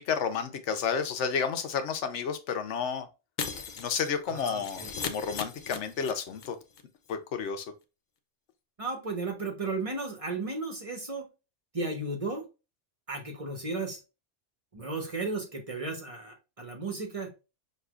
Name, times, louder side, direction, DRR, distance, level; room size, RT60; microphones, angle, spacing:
voice 1, 0.0-3.1 3.8-6.6 7.1-7.6, left 6 dB, 80° left, 1.0 m, -31 dB
Shatter, 3.4-6.5 6.7-6.8 7.1-7.2, left 5 dB, 50° left, 0.6 m, -38 dB
voice 2, 4.3-4.9 8.8-11.3 11.7-12.4 13.1-14.0 14.7-17.3, right 3 dB, 30° right, 0.9 m, -34 dB
6.4 x 2.4 x 2.3 m
omnidirectional pair, 1.2 m